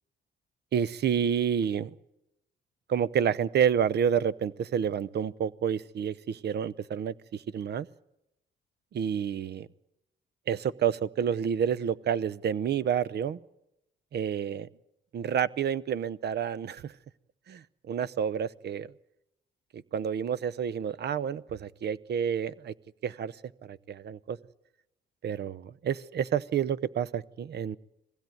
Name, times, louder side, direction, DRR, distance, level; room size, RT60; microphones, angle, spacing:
voice 1, 0.7-1.9 2.9-7.9 8.9-9.7 10.5-13.4 14.1-14.7 15.1-16.9 17.5-18.9 19.7-22.7 23.0-23.3 23.6-24.4 25.2-27.8, right 8 dB, 55° right, 19 dB, 0.8 m, -29 dB
21.0 x 16.0 x 9.2 m, 0.88 s
cardioid pair, 90°, 20 cm